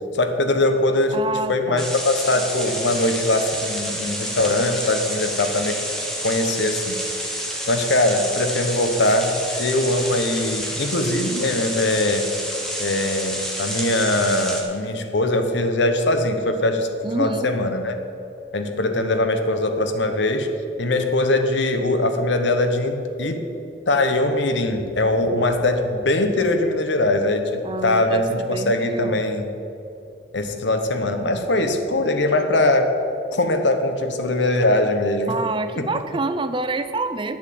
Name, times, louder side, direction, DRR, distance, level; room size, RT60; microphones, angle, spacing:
voice 1, 0.1-5.8 6.2-7.3 7.7-9.3 9.6-12.3 12.8-16.9 17.1-18.0 18.5-20.5 20.8-23.5 23.9-29.5 30.3-33.0 33.3-35.4 35.8-35.9, left 2 dB, 75° left, 7 dB, 1.0 m, -21 dB
voice 2, 1.1-1.9 17.0-17.5 27.6-29.2 35.3-37.4, right 3 dB, 25° right, 10 dB, 0.5 m, -27 dB
sound 1, 1.8-14.6, equal, 5° left, 1.3 m, -29 dB
9.7 x 7.4 x 7.8 m, 2.8 s
head